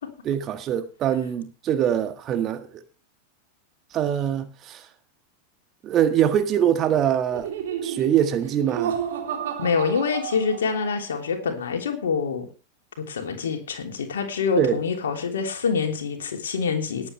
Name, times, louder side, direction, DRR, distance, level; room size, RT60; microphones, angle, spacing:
voice 1, 0.2-2.8 3.9-4.8 5.8-7.5 7.8-9.0 14.6-14.8, right 9 dB, 30° right, 1.7 m, -23 dB
Laughter, 7.3-11.0, right 9 dB, 60° right, 3.5 m, -31 dB
voice 2, 9.6-12.5 13.0-17.1, left 5 dB, 65° left, 3.1 m, -26 dB
20.0 x 8.6 x 3.3 m
figure-of-eight pair, 90°, 0 cm